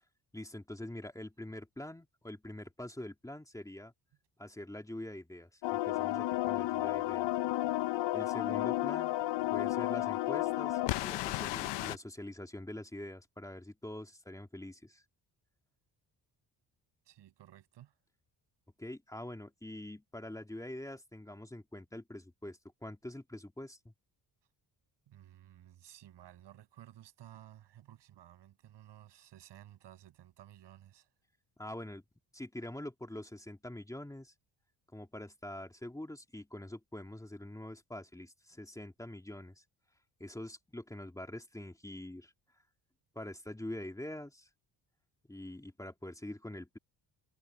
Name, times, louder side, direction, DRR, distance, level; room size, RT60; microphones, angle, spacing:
voice 1, 0.3-3.9 4.4-7.3 8.1-9.2 9.5-15.0 18.8-23.9 31.6-32.0 32.3-34.3 34.9-39.6 40.2-42.3 43.1-44.5 45.3-46.8, left 1 dB, 10° left, 2.6 m, -45 dB
sound 1, 5.6-12.0, left 16 dB, 80° left, 0.7 m, -32 dB
voice 2, 17.1-18.0 25.1-31.1, right 12 dB, 75° right, 6.9 m, -55 dB
cardioid pair, 100°, 42 cm